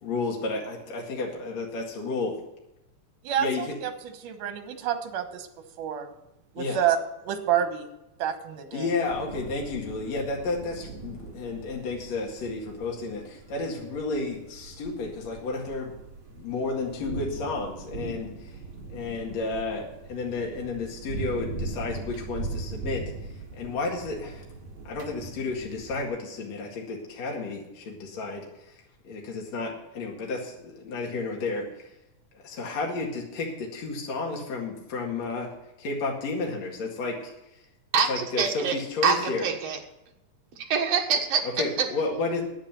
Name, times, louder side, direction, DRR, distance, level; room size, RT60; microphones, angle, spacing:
voice 1, 0.0-2.4 3.4-3.8 6.6-6.8 8.7-15.9 16.3-18.6 18.9-23.0 23.5-24.4 24.8-28.8 29.0-31.9 32.4-35.5 35.8-37.3 38.1-39.5 41.4-42.4, left 3 dB, 60° left, -1 dB, 3.0 m, -32 dB
voice 2, 3.2-3.9 4.2-5.5 5.8-6.1 6.6-7.0 7.2-7.9 8.2-8.9, right 10 dB, 80° right, 8 dB, 2.7 m, -28 dB
sound 1, 9.1-26.1, right 3 dB, 40° right, 2.0 m, -40 dB
voice 3, 37.9-38.8 39.0-39.8 40.6-41.5, right 6 dB, 55° right, 2 dB, 2.4 m, -25 dB
10.5 x 9.0 x 7.4 m, 0.91 s
omnidirectional pair, 3.7 m